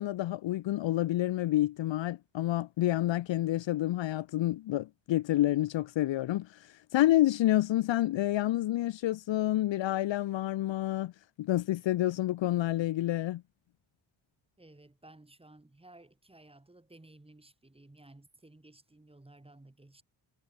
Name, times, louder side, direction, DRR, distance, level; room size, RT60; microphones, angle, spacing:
voice 1, 0.0-6.6 6.9-11.1 11.4-13.4, left 14 dB, 70° left, 0.6 m, -28 dB
voice 2, 14.6-20.0, right 2 dB, 10° right, 5.4 m, -56 dB
wide cardioid pair, 140°, 47 cm